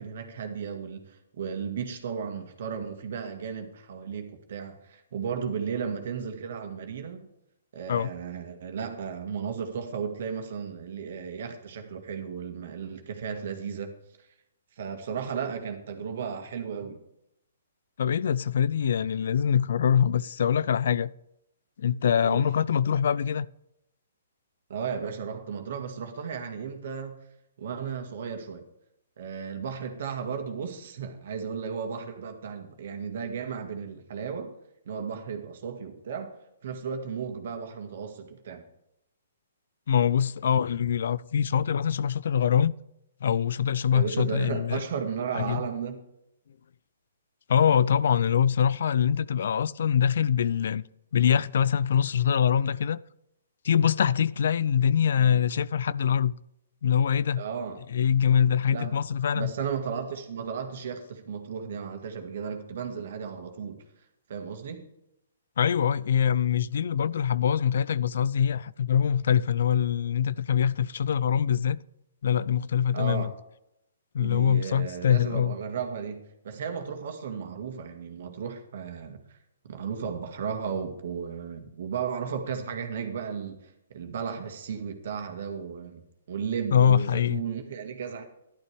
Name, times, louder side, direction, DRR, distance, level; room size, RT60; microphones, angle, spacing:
voice 1, 0.0-7.3 7.7-13.9 14.8-17.0 22.2-22.5 24.7-27.2 27.6-28.6 29.2-34.6 34.9-38.7 43.9-46.0 57.3-57.8 58.7-59.0 59.3-63.8 64.3-64.9 72.9-73.3 74.2-79.4 79.6-88.2, right 6 dB, 60° right, 1.9 m, -34 dB
voice 2, 18.0-21.1 21.8-23.5 39.9-42.7 43.2-44.8 45.3-45.6 47.5-50.8 51.1-53.0 53.6-56.3 56.8-57.4 57.9-59.5 65.6-71.8 72.2-73.3 74.1-75.6 86.7-87.4, left 8 dB, 65° left, 0.4 m, -24 dB
11.5 x 11.0 x 3.5 m
hypercardioid pair, 140°, 0 cm